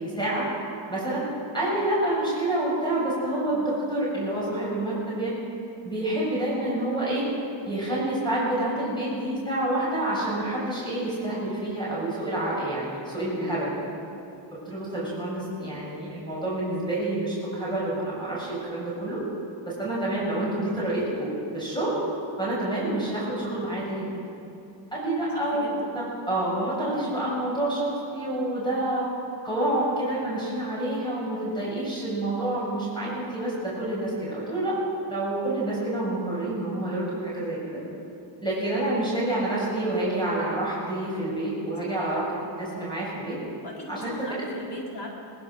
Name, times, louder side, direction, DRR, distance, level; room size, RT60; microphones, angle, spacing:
voice 1, 0.2-0.5 0.9-1.2 1.5-5.4 5.8-7.2 7.7-13.7 14.5-19.2 19.6-22.0 22.4-24.1 24.9-25.7 26.3-29.1 29.4-34.8 35.1-37.8 38.4-42.2 42.6-43.4 43.9-44.1, right 1 dB, 10° left, -6 dB, 7.0 m, -28 dB
voice 2, 25.3-26.0 41.8-42.0 43.6-45.1, left 1 dB, 60° left, -3 dB, 4.8 m, -39 dB
22.0 x 19.0 x 6.5 m, 2.7 s
wide cardioid pair, 105°, 46 cm